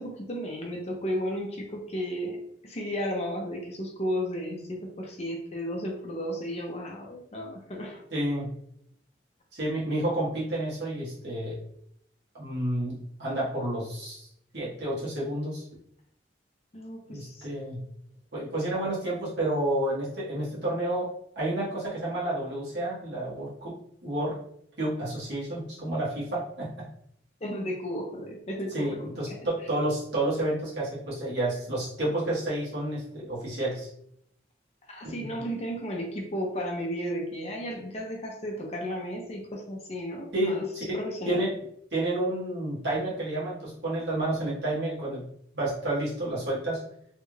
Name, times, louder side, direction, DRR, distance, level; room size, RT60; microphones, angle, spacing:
voice 1, 0.0-8.0 16.7-17.5 27.4-29.4 34.9-40.7 40.9-41.5, equal, 35° left, 0 dB, 0.7 m, -34 dB
voice 2, 8.1-8.5 9.5-11.6 12.3-14.3 14.5-15.6 17.1-17.8 18.3-23.7 24.0-24.3 24.8-26.7 28.7-33.9 35.0-35.3 40.3-41.0 41.2-41.5 41.9-45.2 45.5-46.8, right 1 dB, 75° right, -8 dB, 1.5 m, -30 dB
3.3 x 2.5 x 3.2 m, 0.70 s
head